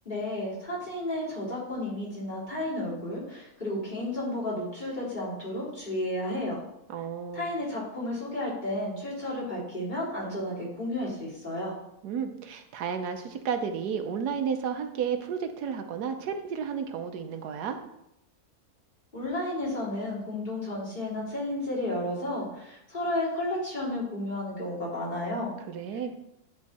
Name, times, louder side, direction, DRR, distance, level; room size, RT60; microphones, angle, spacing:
voice 1, 0.0-6.6 7.3-11.7 19.1-25.5, left 1 dB, 30° left, -8 dB, 3.3 m, -32 dB
voice 2, 6.9-7.5 12.0-17.8 25.7-26.1, right 7 dB, 90° right, 7 dB, 1.3 m, -32 dB
10.5 x 3.6 x 4.2 m, 0.81 s
omnidirectional pair, 1.7 m